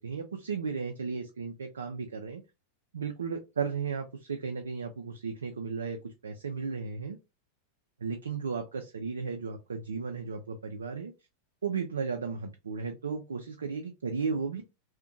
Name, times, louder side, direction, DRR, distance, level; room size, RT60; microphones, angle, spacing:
voice 1, 0.0-2.4 2.9-7.2 8.0-11.1 11.6-14.6, right 5 dB, 70° right, 5 dB, 0.3 m, -35 dB
2.5 x 2.1 x 2.5 m, 0.26 s
figure-of-eight pair, 90°, 0 cm